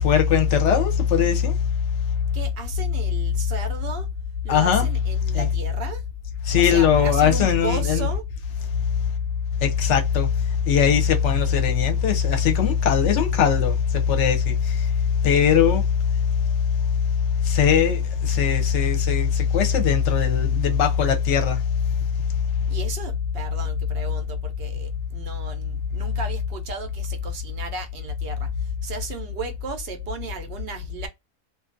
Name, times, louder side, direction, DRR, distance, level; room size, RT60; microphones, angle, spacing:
voice 1, 0.0-1.6 4.5-4.9 5.3-5.5 6.5-8.1 9.6-10.3 10.7-14.8 15.2-15.8 17.4-21.6, left 7 dB, 60° left, 0.8 m, -20 dB
voice 2, 2.3-4.1 4.4-6.0 6.5-8.2 19.4-19.5 22.7-31.1, right 2 dB, 65° right, 0.6 m, -34 dB
2.5 x 2.3 x 2.4 m
omnidirectional pair, 1.5 m